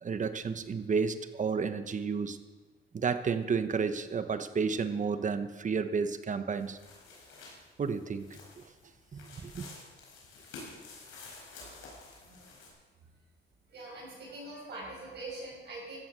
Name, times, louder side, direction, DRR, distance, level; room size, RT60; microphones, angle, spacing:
voice 1, 0.0-2.4 2.9-6.8 7.8-8.6 9.1-9.7, right 5 dB, 40° right, 10 dB, 1.1 m, -32 dB
sound 1, 6.5-12.7, left 3 dB, 90° left, 4.6 m, -50 dB
voice 2, 12.2-12.6 13.7-16.0, right 2 dB, 60° right, -5 dB, 6.0 m, -44 dB
15.0 x 9.2 x 6.7 m, 1.3 s
cardioid pair, 90°, 20 cm